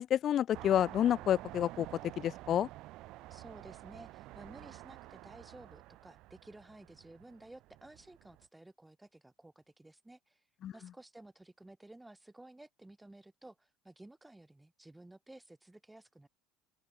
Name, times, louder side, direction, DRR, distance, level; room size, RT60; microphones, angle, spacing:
voice 1, 0.0-1.9 2.2-2.7 10.6-10.7, left 10 dB, 40° left, 0.3 m, -29 dB
sound 1, 0.5-8.5, right 18 dB, 60° right, 1.5 m, -50 dB
voice 2, 3.3-10.4 10.7-16.3, right 2 dB, 5° right, 2.2 m, -55 dB
open air
supercardioid pair, 110°, 0 cm